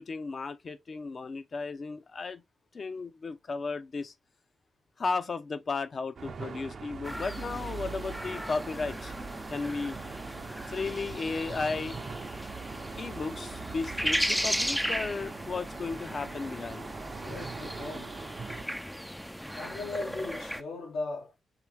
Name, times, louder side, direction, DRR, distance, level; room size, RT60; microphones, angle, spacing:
voice 1, 0.0-2.4 2.7-4.1 5.0-9.1 9.5-10.0 10.7-12.0 13.0-16.9, left 4 dB, 50° left, 0.7 m, -34 dB
sound 1, 6.2-18.6, right 5 dB, 60° right, 0.7 m, -42 dB
sound 2, 7.0-20.6, equal, ahead, 0.4 m, -36 dB
voice 2, 17.2-18.1 19.5-21.4, left 3 dB, 90° left, 1.6 m, -38 dB
4.9 x 3.1 x 3.3 m
supercardioid pair, 55°, 0 cm